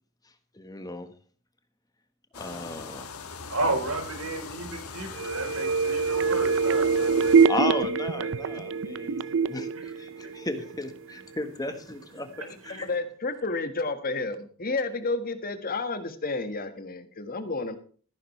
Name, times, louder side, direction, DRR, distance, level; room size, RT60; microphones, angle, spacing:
voice 1, 0.5-1.1 2.3-3.1 7.5-12.9, left 2 dB, 20° left, 9 dB, 1.3 m, -35 dB
sound 1, 2.3-7.5, left 5 dB, 90° left, 1.4 m, -41 dB
voice 2, 3.5-7.8 8.2-8.3 9.3-9.4 9.7-10.5 12.6-12.9, right 2 dB, 90° right, 5 dB, 3.9 m, -33 dB
sound 2, 5.1-10.8 11.2-11.3, right 5 dB, 60° right, 0.5 m, -24 dB
voice 3, 12.7-17.8, left 3 dB, 45° left, 9 dB, 1.6 m, -31 dB
14.0 x 11.5 x 3.2 m, 0.42 s
head